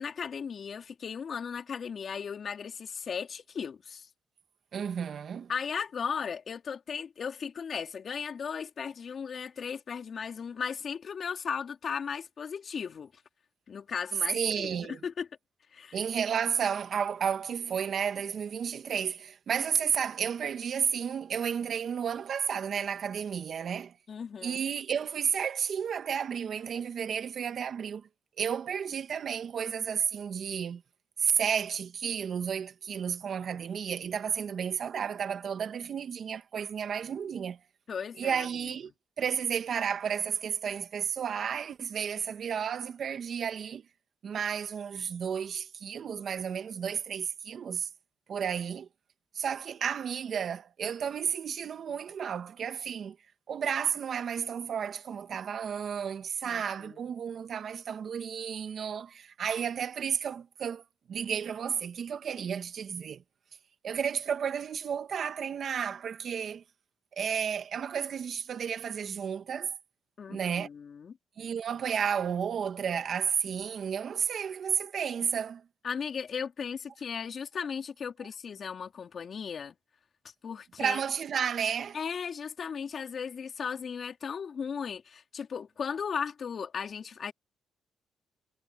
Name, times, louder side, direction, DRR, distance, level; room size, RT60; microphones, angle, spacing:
voice 1, 0.0-4.1 5.5-13.1 13.7-15.3 15.7-16.0 24.1-24.6 37.9-38.5 56.5-57.0 70.2-71.2 75.8-79.7 80.4-81.0 81.9-87.3, left 6 dB, 50° left, 3.6 m, -36 dB
voice 2, 4.7-5.5 14.3-15.0 15.9-24.0 24.4-28.1 28.4-30.8 31.2-37.6 38.2-38.9 39.2-43.9 44.2-47.9 48.3-48.9 49.3-53.2 53.5-60.8 61.1-63.2 63.8-66.6 67.2-69.8 70.3-70.7 71.4-75.6 80.8-82.0, right 7 dB, 55° right, 1.8 m, -32 dB
cardioid pair, 90°, 0 cm